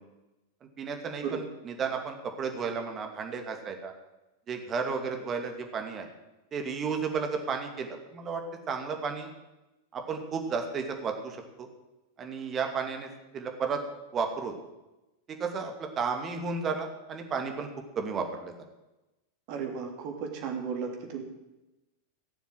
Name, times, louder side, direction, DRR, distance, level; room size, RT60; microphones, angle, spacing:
voice 1, 0.8-3.9 4.5-6.1 6.5-8.4 8.7-9.3 9.9-11.7 12.2-13.1 13.3-13.8 14.1-14.6 15.3-17.7 18.0-18.5, right 5 dB, 25° right, 4 dB, 2.4 m, -33 dB
voice 2, 19.5-21.2, right 6 dB, 45° right, 3 dB, 2.9 m, -34 dB
17.0 x 7.1 x 7.9 m, 1.0 s
figure-of-eight pair, 90°, 0 cm